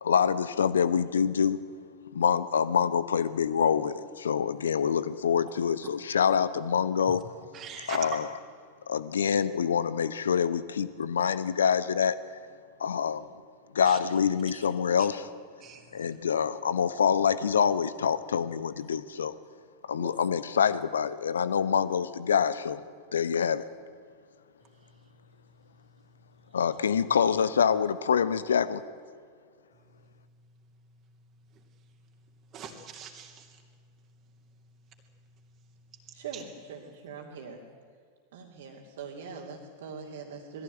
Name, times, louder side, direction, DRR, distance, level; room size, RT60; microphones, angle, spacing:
voice 1, 0.0-1.6 2.1-7.2 7.9-8.2 8.9-12.2 12.8-13.3 13.7-15.2 15.9-19.3 19.9-22.8 23.1-23.6 26.5-28.8, left 7 dB, 65° left, 15 dB, 1.0 m, -26 dB
voice 2, 7.5-8.2 13.8-14.0 14.5-14.7 15.0-15.1 15.6-16.2 20.0-20.2 24.7-24.9 26.5-26.6 31.5-31.6 32.5-33.6 36.3-36.4, right 7 dB, 30° right, 1 dB, 2.8 m, -43 dB
voice 3, 36.1-37.6 38.3-40.6, right 5 dB, 60° right, -3 dB, 2.7 m, -42 dB
21.0 x 15.5 x 9.3 m, 2.1 s
figure-of-eight pair, 90°, 0 cm